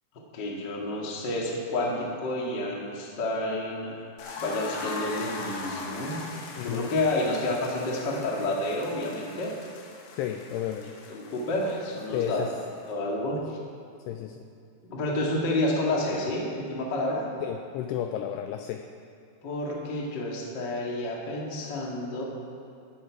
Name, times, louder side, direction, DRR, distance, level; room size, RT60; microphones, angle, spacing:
voice 1, 0.3-4.1 4.4-9.5 11.1-12.5 12.9-13.6 14.8-17.3 19.4-22.2, left 1 dB, 45° left, -3 dB, 1.4 m, -30 dB
sound 1, 4.2-12.9, left 3 dB, 70° left, 3.6 m, -41 dB
voice 2, 6.5-6.9 10.2-10.9 12.1-12.5 14.1-14.4 17.4-18.8, left 10 dB, 85° left, 5 dB, 2.3 m, -32 dB
16.0 x 11.5 x 4.8 m, 2.4 s
omnidirectional pair, 5.4 m